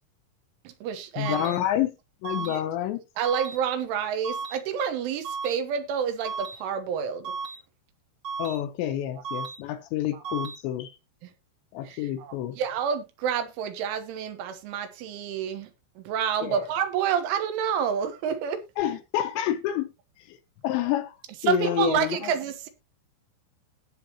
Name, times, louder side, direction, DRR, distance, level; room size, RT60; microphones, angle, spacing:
voice 1, 0.7-1.5 2.4-2.6 3.2-7.3 11.9-15.7 16.0-18.6 21.5-22.7, right 8 dB, 80° right, 3.6 m, -29 dB
voice 2, 1.2-1.9 2.2-3.0 8.4-10.9 11.7-12.6 16.4-16.7 18.8-19.9 20.3-20.4 20.6-21.2 21.4-22.3, left 11 dB, 75° left, 2.9 m, -28 dB
sound 1, 1.2-1.6 2.2-2.6 3.2-3.6 4.2-4.6 5.2-5.6 6.2-6.6 7.2-7.6 8.2-8.6 9.2-9.6 10.2-10.6, right 5 dB, 45° right, 1.6 m, -34 dB
18.0 x 6.4 x 2.9 m
omnidirectional pair, 5.7 m